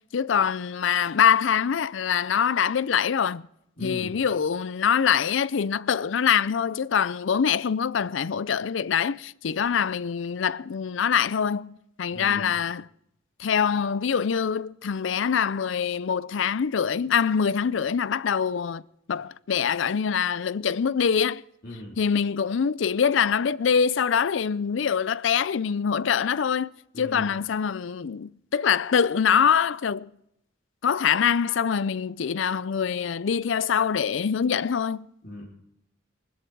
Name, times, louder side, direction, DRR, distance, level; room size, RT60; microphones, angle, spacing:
voice 1, 0.0-3.5 3.8-12.8 13.4-18.8 19.1-21.4 22.0-26.7 27.0-30.1 30.8-35.1, left 7 dB, 70° left, 0.5 m, -24 dB
voice 2, 3.8-4.1 12.1-12.6 21.6-22.0 26.9-27.3 35.2-35.4, equal, 50° left, 3.2 m, -38 dB
20.5 x 13.0 x 4.6 m
head